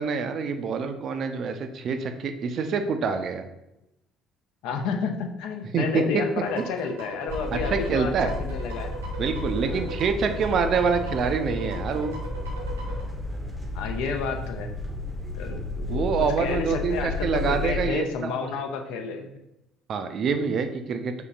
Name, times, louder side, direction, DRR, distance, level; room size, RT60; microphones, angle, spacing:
voice 1, 0.0-3.4 5.7-6.2 7.5-8.3 9.2-12.2 15.9-18.3 19.9-21.1, right 5 dB, 45° right, 7 dB, 0.4 m, -26 dB
voice 2, 4.6-8.9 9.6-9.9 13.7-14.7 15.3-16.1 16.4-19.3, left 5 dB, 60° left, 5 dB, 0.5 m, -31 dB
sound 1, 6.1-13.0, right 2 dB, 80° right, 0.9 m, -39 dB
sound 2, 7.3-17.9, left 2 dB, 5° right, 0.7 m, -32 dB
5.5 x 2.8 x 2.4 m, 0.88 s
figure-of-eight pair, 55°, 0 cm